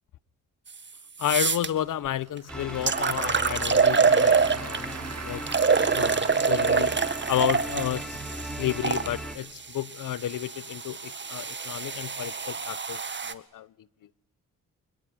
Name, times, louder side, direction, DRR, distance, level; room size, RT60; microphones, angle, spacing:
sound 1, 0.7-0.8 1.2-1.7 2.4-2.5 2.9-4.9 5.5-9.1 9.9-13.3, right 5 dB, 35° right, 2.0 m, -25 dB
voice 1, 1.2-5.5 5.9-13.7, left 11 dB, 75° left, 1.2 m, -32 dB
Applause / Crowd, 1.9-8.3, right 7 dB, 50° right, 2.1 m, -42 dB
sound 2, 2.5-9.4, right 1 dB, 5° left, 6.5 m, -38 dB
28.0 x 21.5 x 9.7 m
cardioid pair, 65°, 32 cm